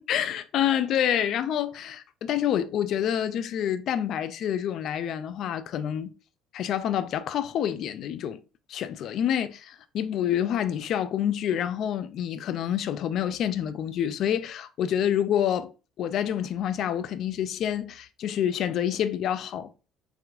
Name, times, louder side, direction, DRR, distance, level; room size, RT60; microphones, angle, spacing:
voice 1, 0.0-6.1 6.5-8.4 8.7-19.7, left 10 dB, 50° left, 0.3 m, -27 dB
4.3 x 4.0 x 2.5 m
cardioid pair, 155°, 0 cm